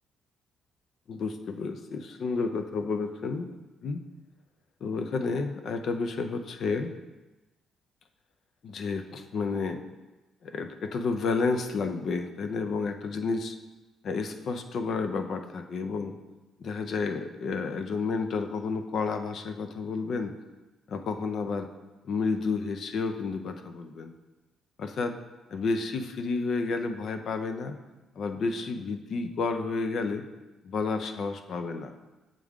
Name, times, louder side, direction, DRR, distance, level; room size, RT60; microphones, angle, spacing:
voice 1, 1.1-3.5 3.8-4.0 4.8-6.9 8.6-9.8 10.4-13.6 14.0-16.2 16.6-20.4 20.9-21.7 22.0-24.1 24.8-25.2 25.5-27.8 28.2-30.3 30.6-31.9, left 4 dB, 60° left, 7 dB, 0.5 m, -31 dB
7.5 x 3.7 x 3.5 m, 1.1 s
cardioid pair, 90°, 0 cm